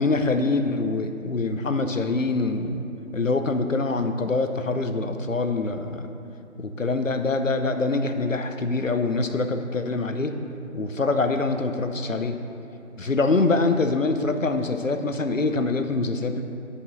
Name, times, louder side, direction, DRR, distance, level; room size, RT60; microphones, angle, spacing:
voice 1, 0.0-2.8 3.1-6.1 6.6-10.3 10.7-12.4 13.0-16.4, left 3 dB, 70° left, 7 dB, 0.8 m, -24 dB
9.1 x 5.5 x 6.3 m, 2.8 s
figure-of-eight pair, 170°, 40 cm